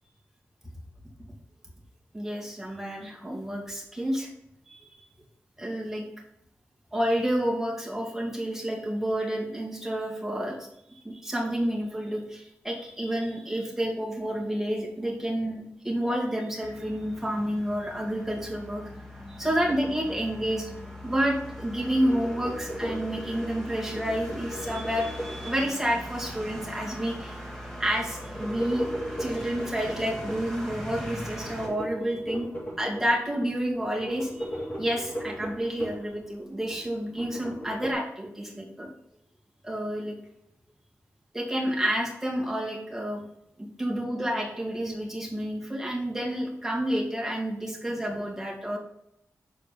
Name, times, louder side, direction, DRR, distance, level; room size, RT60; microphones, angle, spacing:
voice 1, 2.1-4.3 4.7-5.1 5.6-6.0 6.9-18.8 19.3-20.7 21.0-27.4 27.8-28.9 29.2-32.5 32.8-38.9 39.6-40.2 41.3-43.2 43.6-48.8, equal, 5° right, -2 dB, 1.8 m, -30 dB
sound 1, 16.6-31.7, equal, 10° left, 2.2 m, -41 dB
sound 2, 19.4-21.1 21.4-26.2 28.0-30.5 31.4-33.4 33.8-36.1 36.5-37.9, equal, 40° left, 2.2 m, -37 dB
6.9 x 4.2 x 5.1 m, 0.75 s
wide cardioid pair, 120°, 5 cm